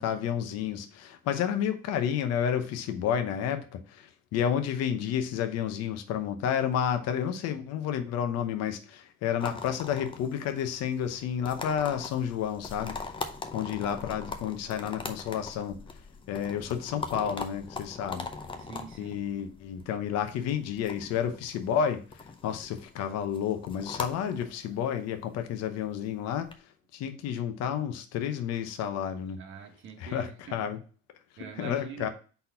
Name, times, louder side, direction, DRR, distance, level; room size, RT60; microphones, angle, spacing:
voice 1, 0.0-13.0 13.5-15.8 16.3-18.3 19.0-26.5 26.9-29.4 30.0-30.8 31.6-32.1, left 8 dB, 55° left, 0.9 m, -31 dB
sound 1, 9.4-26.5, left 4 dB, 15° left, 0.6 m, -42 dB
voice 2, 18.6-19.2 29.4-30.7 31.4-32.1, right 5 dB, 40° right, 1.3 m, -44 dB
4.1 x 4.1 x 5.5 m
cardioid pair, 130°, 31 cm